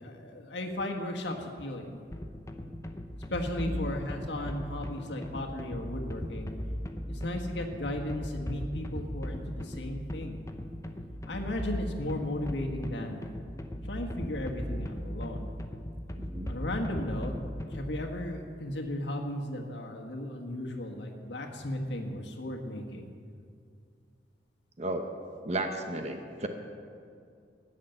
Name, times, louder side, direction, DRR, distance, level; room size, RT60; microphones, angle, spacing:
voice 1, 0.0-2.0 3.3-6.5 7.1-10.4 11.3-13.2 13.9-15.5 16.5-17.3 17.7-23.1, left 1 dB, 80° left, 2 dB, 1.5 m, -35 dB
sound 1, 2.1-18.0, equal, 20° left, 0.7 m, -38 dB
voice 2, 16.1-16.5 24.8-25.1 25.4-26.5, right 1 dB, 40° right, 5 dB, 0.9 m, -34 dB
13.5 x 6.6 x 9.0 m, 2.3 s
head